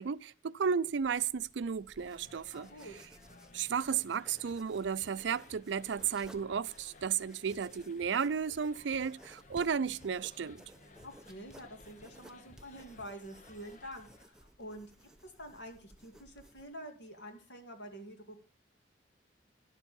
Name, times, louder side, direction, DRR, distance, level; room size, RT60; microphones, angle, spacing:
voice 1, 0.0-2.7 3.5-10.6, right 6 dB, 70° right, 0.4 m, -33 dB
sound 1, 0.9-16.6, right 1 dB, 5° right, 0.7 m, -59 dB
sound 2, 2.0-14.2, left 2 dB, 40° left, 1.0 m, -58 dB
voice 2, 2.5-3.0 11.0-18.4, equal, 70° left, 2.5 m, -48 dB
11.5 x 7.4 x 5.3 m
head